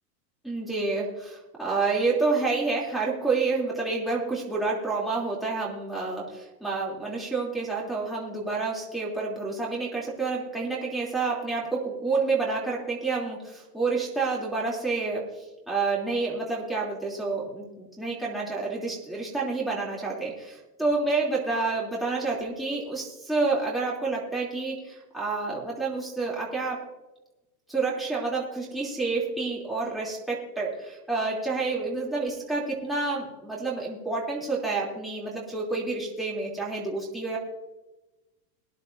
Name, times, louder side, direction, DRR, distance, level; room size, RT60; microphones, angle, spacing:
voice 1, 0.4-20.3 20.8-26.8 27.7-37.4, right 3 dB, ahead, -6 dB, 3.1 m, -29 dB
21.5 x 10.5 x 2.7 m, 1.1 s
supercardioid pair, 145°, 49 cm